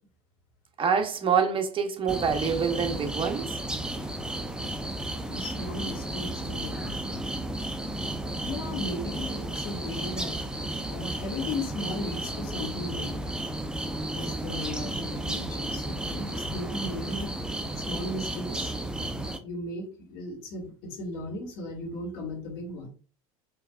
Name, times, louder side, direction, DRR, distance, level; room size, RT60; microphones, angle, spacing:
voice 1, 0.8-3.6 6.1-6.3, right 6 dB, 30° right, 1.0 m, -26 dB
sound 1, 2.1-19.4, right 1 dB, 5° right, 0.6 m, -33 dB
voice 2, 5.2-7.4 8.4-10.4 10.9-13.2 14.1-17.3 17.8-18.8 19.4-22.9, left 1 dB, 55° left, 1.8 m, -36 dB
4.5 x 3.1 x 2.4 m
hypercardioid pair, 75°, 19 cm